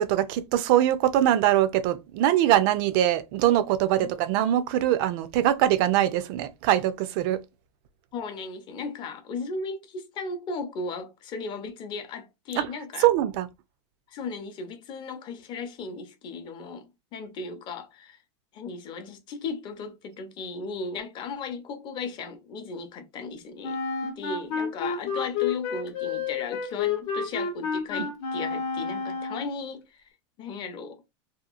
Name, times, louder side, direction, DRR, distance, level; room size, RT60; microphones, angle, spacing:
voice 1, 0.0-7.4 12.6-12.7 13.0-13.5, right 12 dB, 50° right, 0.4 m, -22 dB
voice 2, 8.1-13.1 14.1-18.2 18.5-30.0 30.4-31.0, left 4 dB, 30° left, 0.6 m, -36 dB
Wind instrument woodwind instrument, 23.6-29.6, left 5 dB, 60° left, 0.8 m, -30 dB
2.9 x 2.3 x 2.4 m
supercardioid pair, 145°, 15 cm